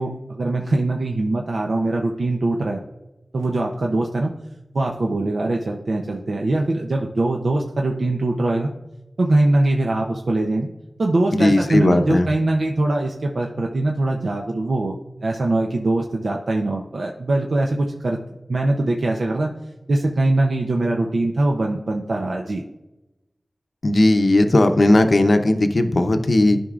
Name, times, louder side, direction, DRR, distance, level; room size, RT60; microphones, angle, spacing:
voice 1, 0.0-2.8 3.3-4.3 4.7-8.7 9.2-10.7 11.0-14.9 15.2-18.2 18.5-19.5 19.9-22.6, right 2 dB, 75° right, 1 dB, 0.7 m, -22 dB
voice 2, 11.3-12.3 23.8-26.6, left 1 dB, 55° left, 7 dB, 0.6 m, -16 dB
11.5 x 5.3 x 2.4 m, 0.94 s
wide cardioid pair, 60°, 0 cm